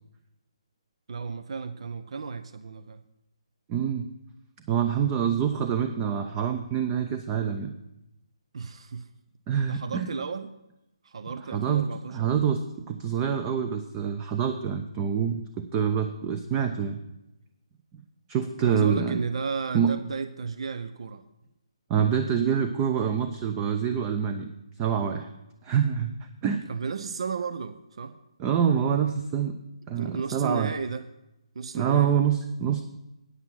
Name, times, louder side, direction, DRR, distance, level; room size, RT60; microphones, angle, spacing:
voice 1, 1.1-3.0 8.5-9.1 9.7-10.5 11.0-12.3 18.6-21.2 26.7-28.2 30.0-31.1 31.5-32.2, right 5 dB, 65° right, 11 dB, 0.6 m, -33 dB
voice 2, 3.7-4.1 4.7-7.7 9.5-10.1 11.5-17.0 18.3-19.2 19.7-19.9 21.9-25.3 25.6-26.6 28.4-29.5 29.9-30.7 31.7-32.8, right 8 dB, 20° right, 7 dB, 0.5 m, -26 dB
9.6 x 8.1 x 5.8 m, 0.91 s
hypercardioid pair, 155°, 3 cm